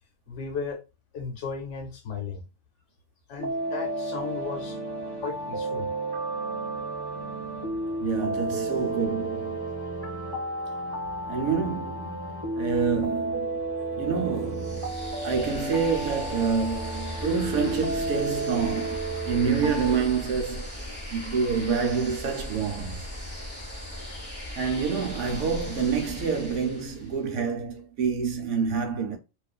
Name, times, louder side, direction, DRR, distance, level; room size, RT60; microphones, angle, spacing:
voice 1, 0.3-0.8 1.1-2.4 3.3-4.8 5.2-5.9, left 5 dB, 65° left, 1.0 m, -35 dB
sound 1, 3.4-20.0, right 2 dB, 30° right, 0.5 m, -32 dB
voice 2, 8.0-9.7 11.3-13.6 14.0-23.1 24.6-29.2, right 5 dB, 75° right, 0.9 m, -28 dB
sound 2, 14.5-27.2, left 1 dB, 10° left, 0.9 m, -38 dB
2.5 x 2.3 x 2.2 m
omnidirectional pair, 1.3 m